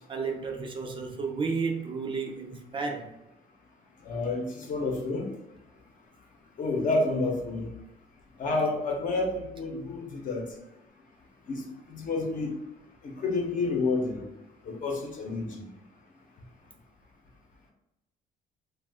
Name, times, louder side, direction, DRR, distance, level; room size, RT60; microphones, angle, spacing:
voice 1, 0.1-3.1, right 4 dB, 30° right, 0.5 m, -32 dB
voice 2, 4.1-5.3 6.6-7.7 8.4-10.4 11.5-11.6 11.9-12.5 13.0-14.2 14.7-15.6, left 3 dB, 50° left, 0.8 m, -29 dB
2.5 x 2.4 x 3.4 m
cardioid pair, 110°, 17 cm